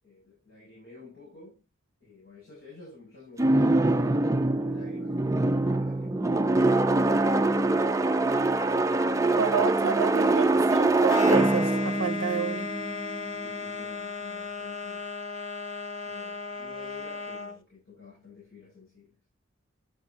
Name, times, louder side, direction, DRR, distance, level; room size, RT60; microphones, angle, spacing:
voice 1, 0.0-1.6 2.0-6.4 13.4-15.1 16.0-19.2, left 5 dB, 60° left, 6.3 m, -50 dB
sound 1, 3.4-13.3, right 2 dB, 15° right, 0.4 m, -24 dB
voice 2, 9.4-12.7, right 6 dB, 75° right, 0.6 m, -30 dB
sound 2, 11.1-17.6, left 4 dB, 80° left, 1.2 m, -36 dB
11.0 x 6.5 x 2.7 m
head